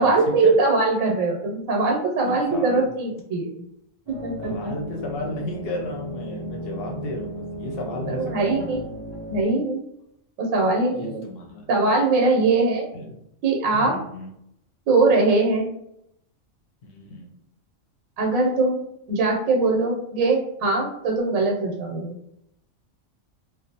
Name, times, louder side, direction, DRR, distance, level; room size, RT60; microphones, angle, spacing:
voice 1, 0.0-3.6 4.1-4.7 8.1-8.8 9.3-9.8 10.4-11.2 11.7-12.9 13.4-13.9 14.9-15.7 18.2-18.8 19.1-22.2, right 3 dB, 85° right, 0 dB, 1.0 m, -21 dB
voice 2, 2.2-2.8 4.4-8.8 10.9-11.7 12.9-13.1 13.7-14.3 16.9-17.3, left 2 dB, 60° left, 1 dB, 0.7 m, -34 dB
sound 1, 4.1-9.4, right 1 dB, 35° right, 0.4 m, -34 dB
2.5 x 2.0 x 2.7 m, 0.75 s
omnidirectional pair, 1.4 m